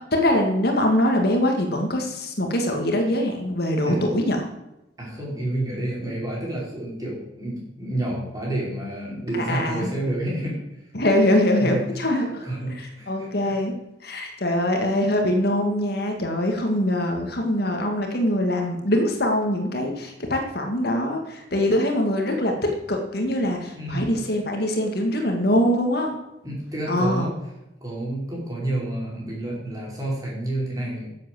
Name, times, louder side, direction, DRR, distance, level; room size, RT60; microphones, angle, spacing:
voice 1, 0.1-4.4 9.3-9.9 10.9-12.4 12.8-13.7 14.0-26.1 26.9-27.3, left 1 dB, 55° left, 3 dB, 2.1 m, -23 dB
voice 2, 5.0-10.6 11.6-11.8 12.4-13.5 23.7-24.1 26.4-27.3 27.8-31.1, right 1 dB, 20° right, -5 dB, 5.3 m, -29 dB
11.0 x 7.8 x 7.9 m, 0.90 s
head